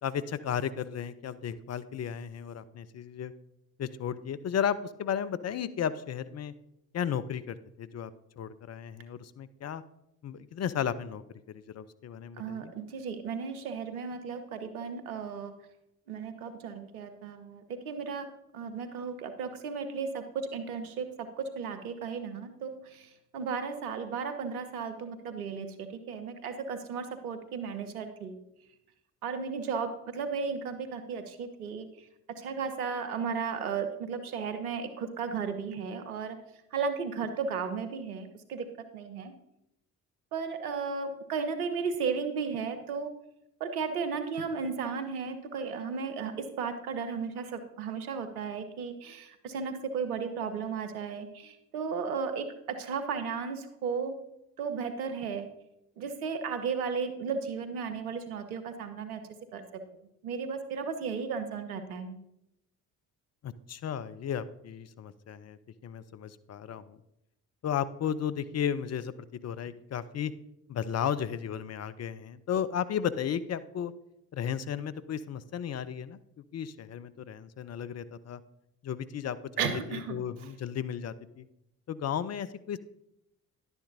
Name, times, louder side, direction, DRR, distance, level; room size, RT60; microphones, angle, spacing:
voice 1, 0.0-3.3 3.8-6.5 6.9-9.8 10.2-12.7 63.4-67.0 67.6-69.1 69.4-70.3 70.7-73.9 74.3-76.2 76.5-78.4 78.8-81.4 81.9-82.8, left 8 dB, 35° left, 14 dB, 0.6 m, -34 dB
voice 2, 12.4-15.5 16.1-18.3 18.5-28.4 29.2-36.4 36.7-38.7 38.9-39.3 40.3-43.1 43.6-54.2 54.6-55.5 56.0-59.2 59.5-59.8 60.2-62.2 79.6-80.5, right 5 dB, 85° right, 8 dB, 1.0 m, -35 dB
11.0 x 9.4 x 2.7 m, 0.83 s
hypercardioid pair, 50°, 44 cm